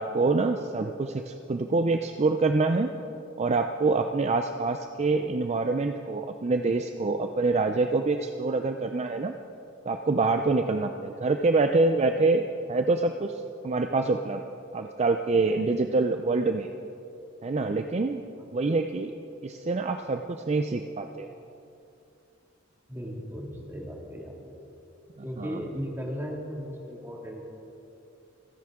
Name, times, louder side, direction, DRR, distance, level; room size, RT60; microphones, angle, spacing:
voice 1, 0.0-2.9 3.4-9.3 9.8-14.4 14.7-16.7 17.4-18.2 18.5-19.1 19.4-21.3 25.4-25.6, right 3 dB, 35° right, 6 dB, 0.5 m, -26 dB
voice 2, 22.9-24.4 25.2-27.4, equal, 10° right, -1 dB, 2.3 m, -36 dB
27.0 x 10.5 x 3.7 m, 2.7 s
head